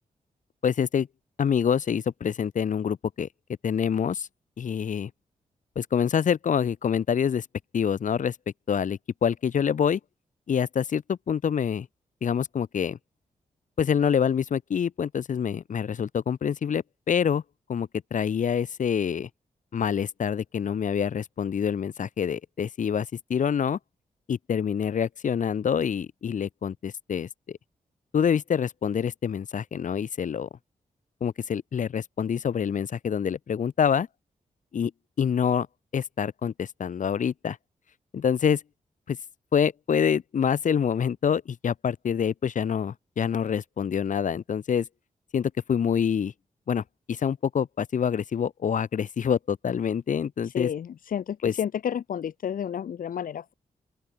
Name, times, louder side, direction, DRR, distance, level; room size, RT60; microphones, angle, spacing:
voice 1, 0.6-1.1 1.4-3.3 3.6-4.3 4.6-5.1 5.7-7.4 7.7-8.3 8.7-10.0 10.5-11.9 12.2-13.0 13.8-17.4 17.7-19.3 19.7-23.8 24.3-27.6 28.1-30.5 31.2-34.1 34.7-34.9 35.2-35.7 35.9-37.6 38.1-38.6 39.1-39.2 39.5-44.9 45.3-46.3 46.7-50.7 51.4-51.5, left 7 dB, 65° left, 6.6 m, -26 dB
voice 2, 50.4-53.5, left 9 dB, 85° left, 2.9 m, -31 dB
open air
wide cardioid pair, 160°, 14 cm